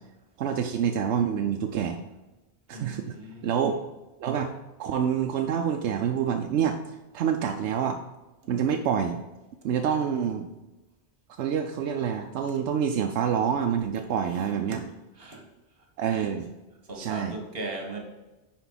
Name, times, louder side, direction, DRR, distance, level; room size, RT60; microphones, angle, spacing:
voice 1, 0.4-2.0 2.7-3.1 3.4-3.8 4.2-4.5 4.8-6.8 7.1-8.0 8.5-9.2 9.6-10.5 11.4-14.8 16.0-16.4 17.0-17.3, right 8 dB, 90° right, 5 dB, 0.9 m, -27 dB
voice 2, 2.7-3.8 14.3-14.9 15.2-15.4 16.9-18.0, right 2 dB, 60° right, 2 dB, 1.7 m, -38 dB
10.0 x 4.3 x 4.0 m, 1.1 s
omnidirectional pair, 1.1 m